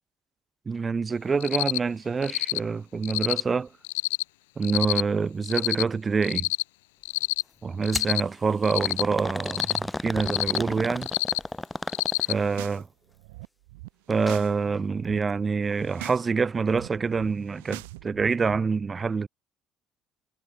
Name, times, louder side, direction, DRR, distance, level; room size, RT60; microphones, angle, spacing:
voice 1, 0.7-3.7 4.6-6.5 7.6-11.1 12.3-12.9 14.1-19.3, right 5 dB, 30° right, 0.8 m, -26 dB
Cricket, 1.4-1.8 2.2-2.6 3.0-3.4 3.8-4.2 4.6-5.0 5.4-5.8 6.2-6.6 7.0-7.4 7.8-8.2 8.6-9.0 9.4-9.8 10.2-10.6 11.0-11.4 11.9-12.3, left 21 dB, 75° left, 0.4 m, -27 dB
sound 1, 7.9-8.2 8.8-12.5 14.1-14.4 14.8-14.9 15.7-15.8, left 2 dB, 10° left, 1.1 m, -33 dB
sound 2, 12.3-12.8 13.1-14.5 14.8-15.2 15.7-16.2 16.5-18.6, right 22 dB, 75° right, 0.7 m, -43 dB
figure-of-eight pair, 55°, 0 cm